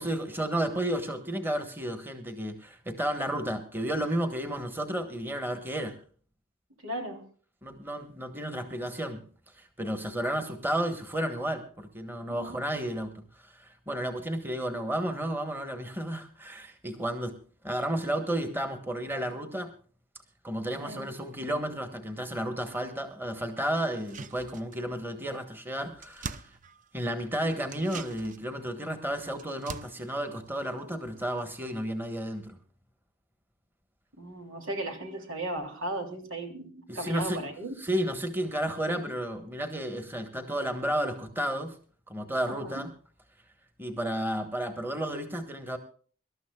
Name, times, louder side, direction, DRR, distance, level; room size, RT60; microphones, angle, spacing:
voice 1, 0.0-6.0 7.6-9.2 9.6-17.4 17.6-19.7 20.4-26.4 26.9-32.6 36.9-37.4 37.8-41.7 42.1-42.9 43.8-45.8, right 1 dB, 10° right, 6 dB, 1.4 m, -32 dB
voice 2, 6.8-7.3 12.3-12.6 20.8-21.1 34.2-37.7 42.5-42.9, right 1 dB, 85° right, 3 dB, 3.2 m, -36 dB
sound 1, 23.9-25.0 25.3-25.4 25.7-27.2 27.6-31.4 31.7-31.8, right 5 dB, 40° right, 0.6 m, -44 dB
25.5 x 12.5 x 2.4 m, 0.42 s
head